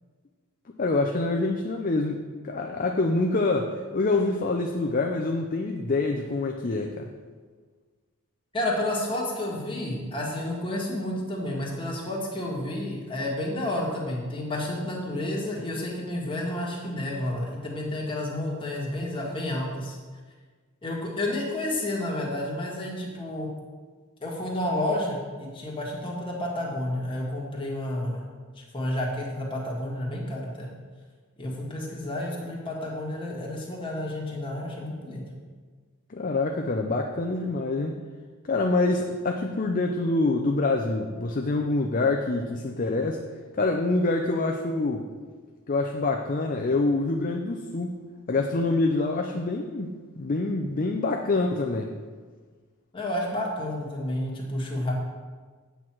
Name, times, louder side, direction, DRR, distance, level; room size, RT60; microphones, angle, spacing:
voice 1, 0.8-7.1 36.1-38.0 38.5-43.2 43.6-45.1 45.7-47.9 48.3-51.9, left 2 dB, 40° left, 2 dB, 0.5 m, -26 dB
voice 2, 8.5-20.0 20.8-23.5 24.2-28.3 28.6-30.7 31.4-35.2 52.9-54.9, left 1 dB, 25° left, -3 dB, 1.7 m, -30 dB
8.2 x 4.6 x 7.4 m, 1.5 s
head